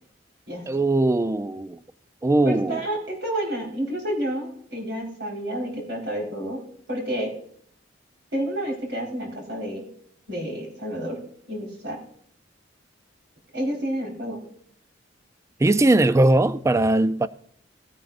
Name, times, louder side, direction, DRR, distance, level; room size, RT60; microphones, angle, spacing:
voice 1, 0.7-1.8 2.2-2.8 15.6-17.3, right 2 dB, 15° right, 0.3 m, -20 dB
voice 2, 2.4-6.6 6.9-7.3 8.3-9.8 10.3-11.2 11.5-12.0 13.5-14.4, equal, 70° right, 4.3 m, -29 dB
17.5 x 9.1 x 2.5 m
head